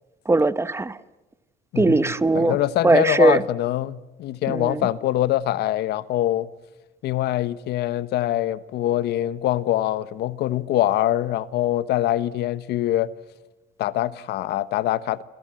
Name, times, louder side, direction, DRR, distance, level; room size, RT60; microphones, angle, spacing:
voice 1, 0.3-1.0 1.8-2.6 2.8-3.4 4.5-4.9, right 3 dB, 15° right, 1.0 m, -19 dB
voice 2, 2.3-6.5 7.0-13.1 13.8-15.2, left 13 dB, 75° left, 1.1 m, -24 dB
28.5 x 26.5 x 7.6 m
cardioid pair, 110°, 17 cm